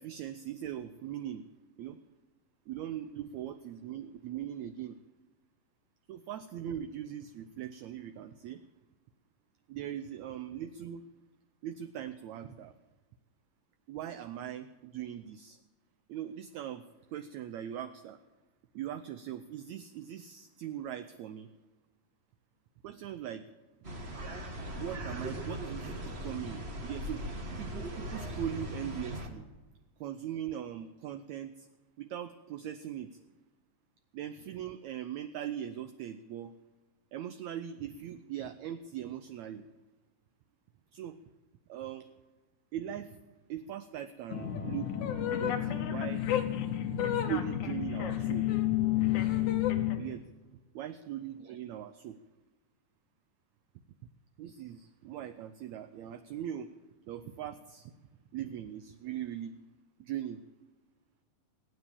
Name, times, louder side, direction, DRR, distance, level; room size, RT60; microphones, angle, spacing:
voice 1, 0.0-1.4 1.8-2.0 2.7-5.0 6.1-8.6 9.7-11.0 11.6-12.7 13.9-15.6 16.1-18.2 18.7-21.5 22.8-23.4 24.8-27.2 27.6-29.5 30.0-31.7 32.0-33.2 34.1-36.5 37.1-39.6 40.9-41.2 41.7-42.1 42.7-43.2 43.5-44.9 45.3-46.2 47.3-48.5 49.7-50.2 50.7-52.2 54.4-56.7 57.0-57.9 58.3-59.5 60.0-60.4, right 10 dB, 80° right, 9 dB, 1.6 m, -40 dB
sound 1, 23.8-29.3, equal, 35° right, 0.9 m, -39 dB
sound 2, 44.3-50.0, left 12 dB, 70° left, 2.4 m, -30 dB
20.0 x 9.3 x 7.2 m, 1.2 s
omnidirectional pair, 4.0 m